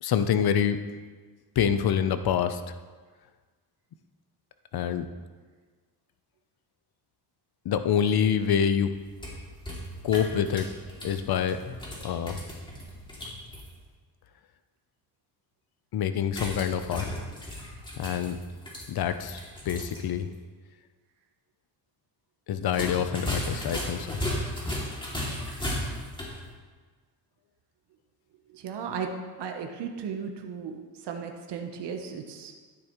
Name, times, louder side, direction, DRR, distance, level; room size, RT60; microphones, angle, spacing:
voice 1, 0.0-0.8 1.6-2.7 4.7-5.1 7.6-8.9 10.0-10.7 11.0-11.8 12.0-12.4 15.9-17.2 18.0-18.4 18.9-19.4 19.6-20.3 22.5-24.1, left 8 dB, 65° left, 10 dB, 0.7 m, -26 dB
sound 1, 8.9-13.7 16.3-20.0 20.3-20.4 22.6-26.4, left 1 dB, 10° left, 2.5 m, -36 dB
voice 2, 28.5-29.1 29.4-30.8 31.0-32.6, right 7 dB, 80° right, 4 dB, 1.0 m, -35 dB
12.5 x 10.0 x 3.1 m, 1.4 s
cardioid pair, 120°, 41 cm